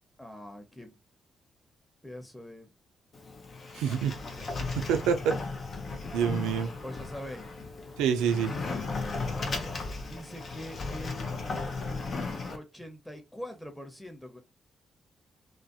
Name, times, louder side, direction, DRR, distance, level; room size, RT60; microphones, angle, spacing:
voice 1, 0.2-1.0 2.0-2.7 3.7-4.5 6.8-7.5 9.3-9.7 10.0-11.3 12.5-14.4, left 1 dB, 10° left, 0.9 m, -44 dB
Sliding door, 3.1-12.6, left 3 dB, 55° left, 0.6 m, -36 dB
voice 2, 3.8-4.1 4.7-5.3 6.1-6.7 8.0-8.5, right 7 dB, 85° right, 0.3 m, -26 dB
2.4 x 2.0 x 2.6 m
supercardioid pair, 50°, 0 cm